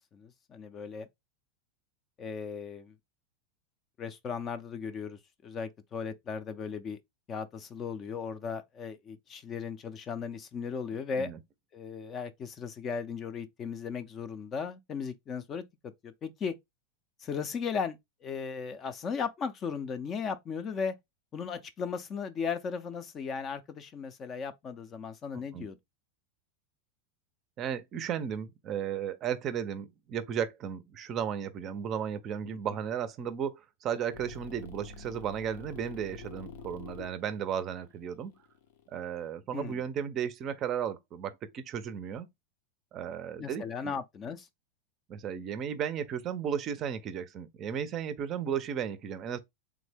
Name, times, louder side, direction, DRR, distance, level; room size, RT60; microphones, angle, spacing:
voice 1, 0.1-1.1 2.2-2.9 4.0-7.0 7.3-11.3 11.7-15.6 16.0-16.5 17.2-21.0 21.3-25.8 32.5-32.6 39.5-39.8 43.4-44.5, left 6 dB, 30° left, 0.4 m, -36 dB
voice 2, 25.3-25.7 27.6-38.3 38.9-42.3 42.9-44.0 45.1-49.4, right 8 dB, 35° right, 0.5 m, -34 dB
sound 1, 34.1-39.3, left 3 dB, 75° left, 0.6 m, -47 dB
3.5 x 2.0 x 3.3 m
supercardioid pair, 130°, 0 cm